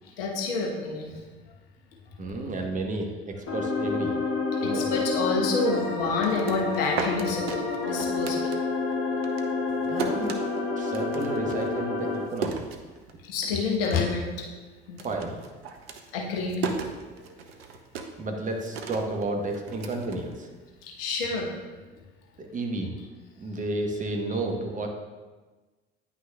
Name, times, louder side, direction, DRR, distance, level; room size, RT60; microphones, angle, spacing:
voice 1, 0.0-1.2 2.2-2.5 4.6-8.5 13.2-14.5 14.9-15.0 16.1-16.6 20.8-21.6, left 4 dB, 65° left, 0 dB, 1.1 m, -29 dB
voice 2, 2.2-4.1 4.6-5.0 9.8-10.4 10.8-12.6 15.0-15.4 17.1-17.5 18.2-20.5 22.4-22.9 23.4-24.9, right 2 dB, 25° right, 2 dB, 1.0 m, -32 dB
sound 1, 3.5-12.2, left 4 dB, 50° left, 1.6 m, -29 dB
sound 2, 6.0-9.0 9.2-13.4 13.7-14.3 14.6-20.8, right 5 dB, 75° right, 0.6 m, -36 dB
9.4 x 5.9 x 2.3 m, 1.3 s
figure-of-eight pair, 60°, 31 cm